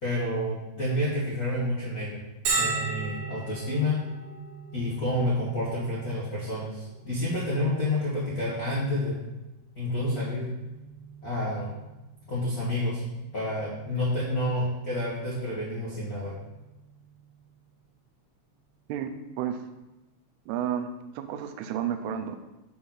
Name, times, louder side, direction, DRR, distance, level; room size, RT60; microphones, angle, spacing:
voice 1, 0.0-2.2 2.5-4.0 4.7-9.2 9.7-10.5 11.2-11.7 12.3-13.0 13.3-16.3, left 1 dB, 75° left, -8 dB, 0.8 m, -29 dB
Bell, 2.5-17.9, right 4 dB, 65° right, 3.0 m, -39 dB
voice 2, 20.5-20.9 21.2-22.4, right 9 dB, 90° right, 8 dB, 2.6 m, -31 dB
6.6 x 3.9 x 6.0 m, 1.0 s
omnidirectional pair, 4.5 m